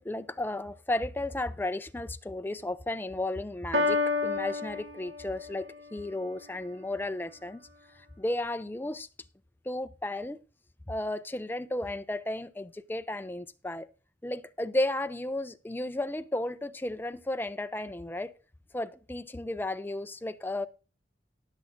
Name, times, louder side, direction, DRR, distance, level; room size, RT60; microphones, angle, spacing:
voice 1, 0.0-7.7 8.2-9.1 9.7-10.4 10.9-13.9 14.2-18.3 18.7-20.7, left 1 dB, 10° left, 0.4 m, -34 dB
Piano, 3.7-5.7, left 3 dB, 85° right, 1.5 m, -29 dB
19.0 x 7.1 x 2.6 m
head